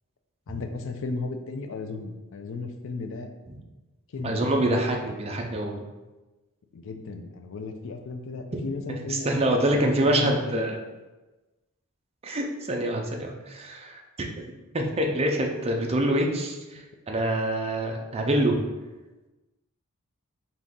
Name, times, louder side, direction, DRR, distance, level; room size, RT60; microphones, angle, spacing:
voice 1, 0.5-3.3 4.1-4.7 6.7-10.6, left 3 dB, 60° left, 7 dB, 0.4 m, -35 dB
voice 2, 4.2-5.8 8.9-10.8 12.2-14.5 14.7-18.6, right 1 dB, 30° right, 1 dB, 0.5 m, -26 dB
3.9 x 2.8 x 3.6 m, 1.1 s
head